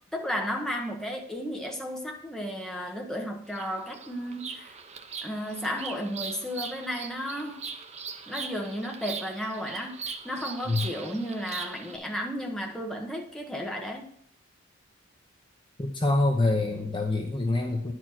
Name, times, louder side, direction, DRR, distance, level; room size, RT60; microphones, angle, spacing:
voice 1, 0.1-4.7 5.2-7.6 8.3-14.1, equal, 5° left, 1.1 m, -33 dB
Bird vocalization bird call bird song, 3.5-12.0, right 5 dB, 35° right, 0.7 m, -40 dB
voice 2, 15.8-17.9, left 2 dB, 25° left, 0.8 m, -25 dB
10.0 x 4.6 x 5.9 m
head